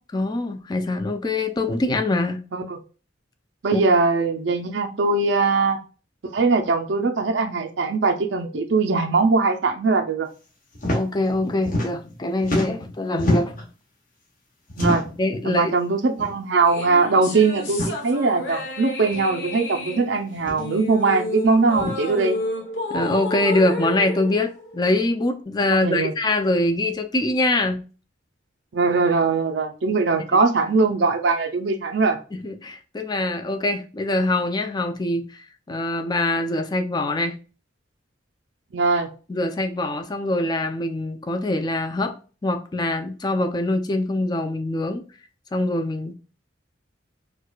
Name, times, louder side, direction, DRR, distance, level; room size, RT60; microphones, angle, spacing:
voice 1, 0.1-2.4 3.7-3.8 10.9-13.5 15.2-15.7 22.9-27.8 32.4-37.4 39.3-42.2 42.4-45.0 45.5-46.1, left 2 dB, 20° left, 0.4 m, -24 dB
voice 2, 3.6-5.8 6.3-10.3 14.8-15.0 15.4-22.4 25.8-26.1 28.7-32.2 38.7-39.1, right 4 dB, 65° right, 0.5 m, -21 dB
sound 1, 10.7-11.0 11.3-12.2 12.4-13.7 14.7-15.2 16.2-16.3 16.7-16.8 17.7-17.9 19.1-19.2 20.4-20.7 21.7-22.0, left 1 dB, 45° left, 0.9 m, -26 dB
sound 2, 16.6-25.2, left 1 dB, 75° left, 0.9 m, -31 dB
4.5 x 2.3 x 2.3 m
head